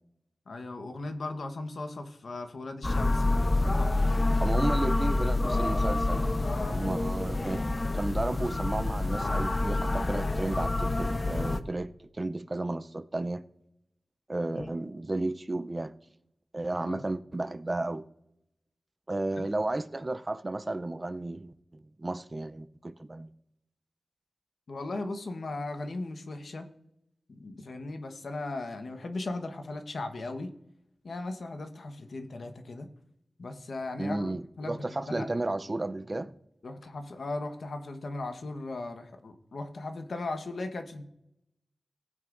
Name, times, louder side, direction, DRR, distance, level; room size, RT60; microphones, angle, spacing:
voice 1, 0.5-4.1 6.4-6.8 14.5-14.7 16.8-17.0 19.3-19.5 24.7-26.7 27.3-30.5 31.0-32.9 33.4-35.3 36.6-41.0, left 2 dB, 70° left, 1.2 m, -37 dB
sound 1, 2.8-11.6, left 2 dB, 35° left, 0.7 m, -27 dB
voice 2, 4.4-6.3 6.7-7.7 7.9-13.4 14.3-15.9 16.5-18.0 19.1-23.3 34.0-36.3, right 2 dB, 30° right, 0.5 m, -33 dB
18.0 x 9.2 x 2.6 m
wide cardioid pair, 90°, 0 cm